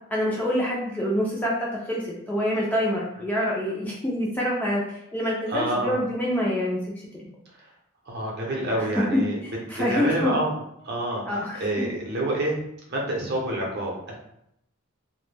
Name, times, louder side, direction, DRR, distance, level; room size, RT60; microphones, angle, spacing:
voice 1, 0.1-2.0 2.3-6.8 8.8-9.0 9.4-10.3 11.3-11.8, equal, 10° left, -5 dB, 0.3 m, -26 dB
voice 2, 5.5-6.0 8.1-9.4 9.7-10.5 10.8-12.6 12.9-14.2, right 1 dB, 50° right, -2 dB, 0.6 m, -27 dB
2.1 x 2.1 x 3.2 m, 0.77 s
head